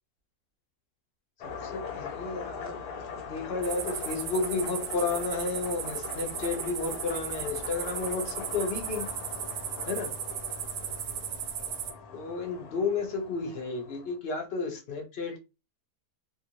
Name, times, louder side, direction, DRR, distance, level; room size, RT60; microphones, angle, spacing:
sound 1, 1.4-14.2, left 5 dB, 75° left, 1.1 m, -41 dB
voice 1, 1.6-2.8 3.1-9.1 9.9-10.1 12.1-15.4, left 4 dB, 50° left, 0.8 m, -32 dB
sound 2, 3.6-11.9, right 9 dB, 85° right, 1.2 m, -36 dB
2.9 x 2.5 x 2.8 m
omnidirectional pair, 1.7 m